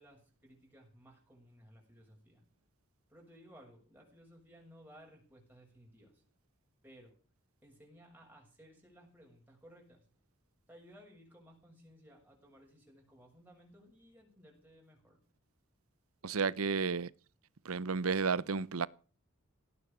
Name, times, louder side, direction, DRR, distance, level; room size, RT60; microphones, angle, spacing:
voice 1, 0.0-2.4 3.1-6.2 6.8-7.1 7.6-10.0 10.7-15.2, equal, 10° right, 6.8 m, -59 dB
voice 2, 16.2-17.1 17.6-18.9, right 5 dB, 85° right, 0.8 m, -32 dB
17.5 x 9.9 x 7.2 m
head